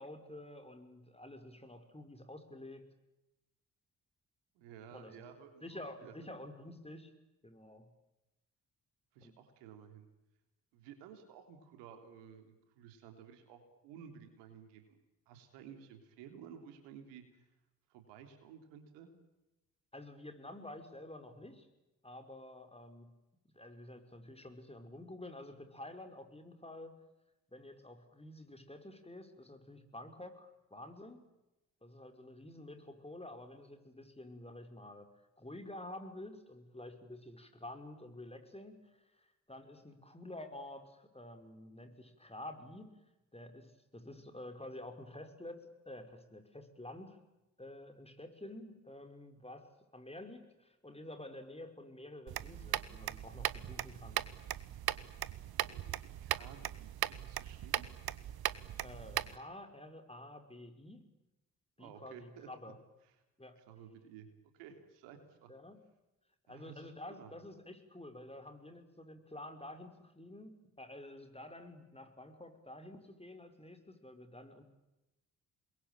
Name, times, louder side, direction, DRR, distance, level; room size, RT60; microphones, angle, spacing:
voice 1, 0.0-2.9 4.9-5.2 5.6-7.1 7.4-7.9 9.2-9.3 19.9-21.7 22.0-23.1 23.5-26.9 27.5-31.3 31.8-35.1 35.4-43.0 43.3-47.2 47.6-54.2 58.8-61.0 61.8-62.8 63.4-63.6 65.5-65.8 66.5-74.6, left 1 dB, 15° left, 7 dB, 5.4 m, -50 dB
voice 2, 4.6-5.6 6.0-6.1 9.1-10.1 10.7-15.0 15.3-17.4 17.9-19.1 55.6-57.9 61.8-62.7 63.6-64.3 64.6-65.5 66.5-66.9 67.2-67.3, right 8 dB, 80° right, 6 dB, 3.5 m, -54 dB
sound 1, 52.3-59.4, right 11 dB, 60° right, 1.2 m, -39 dB
27.5 x 22.0 x 9.1 m, 0.98 s
hypercardioid pair, 40°, 42 cm